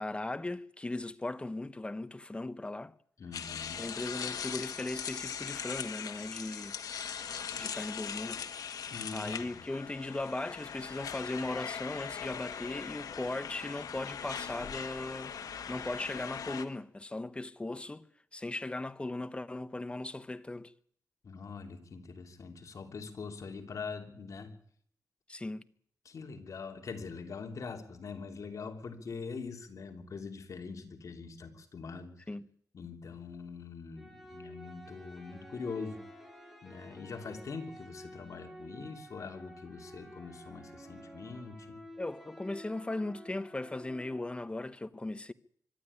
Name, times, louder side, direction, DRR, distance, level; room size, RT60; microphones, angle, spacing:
voice 1, 0.0-2.9 3.8-6.8 7.1-8.4 9.1-15.3 15.7-20.7 25.3-25.6 28.6-28.7 32.3-32.5 42.0-45.3, left 2 dB, 20° left, 1.0 m, -38 dB
voice 2, 3.2-3.8 8.9-9.7 21.2-24.5 26.0-32.3 32.7-36.0 36.6-41.8, left 5 dB, 60° left, 3.2 m, -43 dB
sound 1, 3.3-16.6, left 7 dB, 90° left, 1.3 m, -40 dB
sound 2, 34.0-44.2, equal, ahead, 5.2 m, -51 dB
24.5 x 12.0 x 9.9 m
wide cardioid pair, 105°, 6 cm